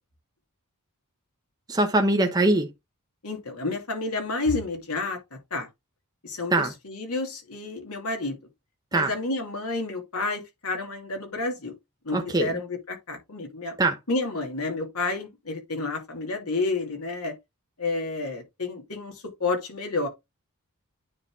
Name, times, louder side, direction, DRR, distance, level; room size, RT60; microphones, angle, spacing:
voice 1, 1.7-2.7 6.5-6.7 8.9-9.1 12.1-12.5 13.8-14.0, right 2 dB, 15° right, 0.9 m, -22 dB
voice 2, 3.2-5.7 6.2-8.4 8.9-11.7 12.0-13.8 14.1-17.3 17.8-20.1, left 3 dB, 80° left, 2.5 m, -30 dB
9.6 x 4.1 x 3.6 m
head